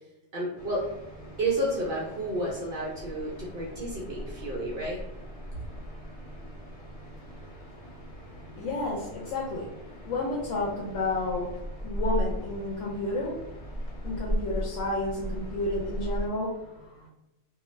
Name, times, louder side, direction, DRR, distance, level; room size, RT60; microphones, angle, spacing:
voice 1, 0.3-0.9 1.4-5.0, right 1 dB, 55° right, -4 dB, 0.7 m, -31 dB
sound 1, 0.6-16.3, equal, 35° left, 0.6 m, -38 dB
voice 2, 8.3-9.7 10.0-11.5 11.8-13.6 14.0-17.1, left 2 dB, 85° left, -3 dB, 0.9 m, -31 dB
2.5 x 2.2 x 3.1 m, 0.96 s
omnidirectional pair, 1.3 m